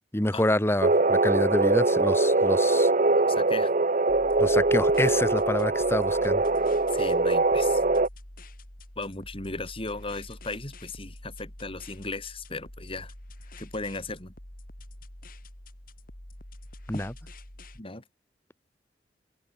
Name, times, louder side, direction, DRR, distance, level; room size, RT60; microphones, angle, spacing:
voice 1, 0.1-2.9 4.4-6.4 16.9-17.1, left 1 dB, 15° left, 2.5 m, -27 dB
sound 1, 0.8-8.1, right 3 dB, 45° right, 1.1 m, -22 dB
voice 2, 3.3-3.7 6.9-7.8 9.0-13.1 13.6-14.3 17.7-18.0, left 3 dB, 35° left, 4.2 m, -36 dB
sound 2, 4.1-17.8, left 1 dB, 55° left, 4.2 m, -46 dB
open air
head